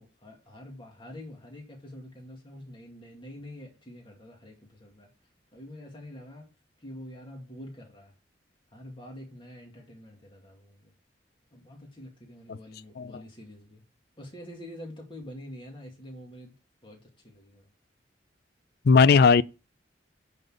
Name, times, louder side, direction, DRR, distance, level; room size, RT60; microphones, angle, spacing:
voice 1, 0.0-5.1 5.5-6.5 6.8-8.1 8.7-10.9 11.5-13.8 14.2-16.5 16.8-17.7, left 1 dB, 30° left, 2.2 m, -46 dB
voice 2, 18.8-19.4, left 5 dB, 60° left, 0.4 m, -18 dB
10.5 x 4.0 x 6.3 m
head